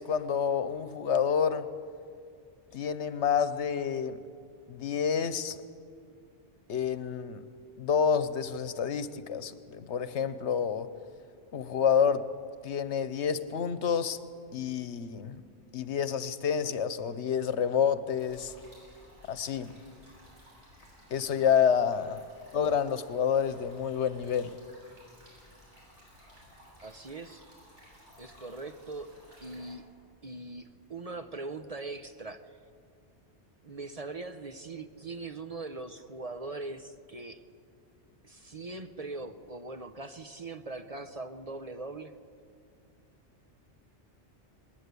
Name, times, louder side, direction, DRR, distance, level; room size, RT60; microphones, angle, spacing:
voice 1, 0.0-1.7 2.7-4.2 4.7-5.6 6.7-7.4 7.8-10.9 11.5-12.3 12.6-14.2 14.5-15.4 15.7-18.5 19.3-19.7 21.1-22.2 22.5-24.5, left 7 dB, 75° left, 13 dB, 1.2 m, -28 dB
sound 1, 18.1-29.8, equal, 90° right, 8.5 m, -57 dB
voice 2, 21.3-21.9 26.8-27.4 28.2-29.1 29.4-29.8 30.2-32.6 33.6-37.4 38.2-42.2, right 3 dB, 35° right, 8 dB, 0.8 m, -41 dB
20.0 x 20.0 x 8.3 m, 2.3 s
omnidirectional pair, 1.2 m